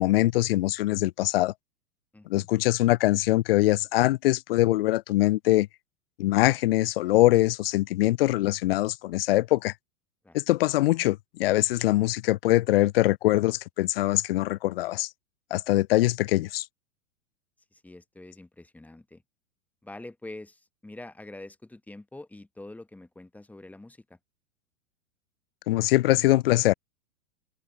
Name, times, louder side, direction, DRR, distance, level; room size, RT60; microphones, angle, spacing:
voice 1, 0.0-1.5 2.3-5.7 6.2-9.7 10.3-15.1 15.5-16.6 25.7-26.7, left 17 dB, 45° left, 0.5 m, -23 dB
voice 2, 2.1-2.5 10.2-10.4 17.7-19.2 19.8-24.2, left 2 dB, 5° left, 1.3 m, -45 dB
open air
figure-of-eight pair, 105°, 41 cm